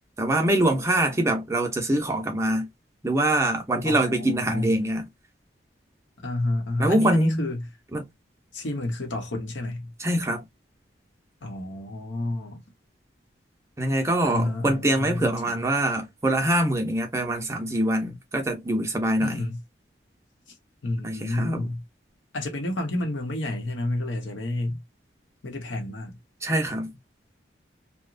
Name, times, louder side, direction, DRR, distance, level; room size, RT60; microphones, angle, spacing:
voice 1, 0.2-2.7 3.0-5.1 6.8-7.5 7.9-8.1 10.0-10.4 13.8-19.4 21.0-21.7 26.4-26.9, right 1 dB, 15° right, 0.6 m, -24 dB
voice 2, 3.8-4.8 6.2-7.7 8.5-9.9 11.4-12.6 14.2-15.6 19.2-19.6 20.8-21.8 22.3-24.8 25.4-26.2, left 1 dB, 85° left, 0.8 m, -30 dB
2.9 x 2.1 x 2.4 m
head